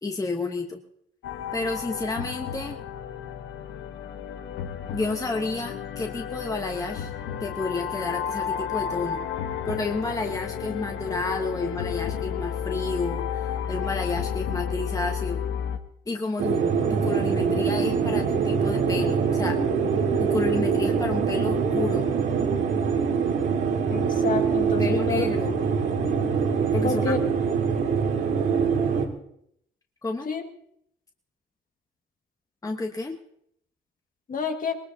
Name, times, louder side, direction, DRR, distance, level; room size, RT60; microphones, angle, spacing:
voice 1, 0.0-0.8 1.5-2.8 4.9-7.1 7.4-9.2 9.7-15.4 16.1-16.6 16.9-19.6 20.2-22.1 24.6-25.6 26.7-27.2 30.0-30.3 32.6-33.1, left 3 dB, 15° left, 3 dB, 1.1 m, -30 dB
sound 1, 1.2-15.8, left 8 dB, 85° left, 1.1 m, -32 dB
sound 2, 16.4-29.1, right 6 dB, 75° right, 2.2 m, -24 dB
voice 2, 23.9-25.3 26.8-27.2 30.3-30.5 34.3-34.8, left 5 dB, 45° left, 4 dB, 1.8 m, -28 dB
20.0 x 19.5 x 2.7 m, 0.71 s
cardioid pair, 90°, 20 cm